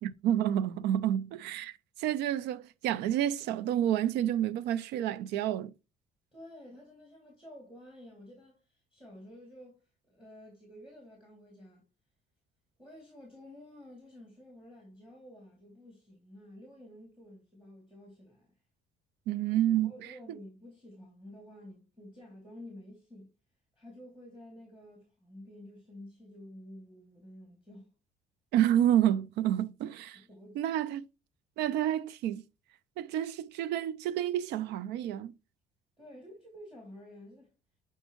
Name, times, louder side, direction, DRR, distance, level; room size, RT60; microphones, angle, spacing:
voice 1, 0.0-1.7 2.0-5.7 19.3-19.9 28.5-30.2 30.6-31.1 31.6-32.4 33.0-35.3, right 11 dB, 85° right, 0.5 m, -29 dB
voice 2, 6.3-11.9 12.8-18.5 19.7-23.3 23.8-27.9 30.1-30.7 36.0-37.5, left 1 dB, 5° right, 2.5 m, -51 dB
7.8 x 4.5 x 2.9 m
cardioid pair, 110°, 17 cm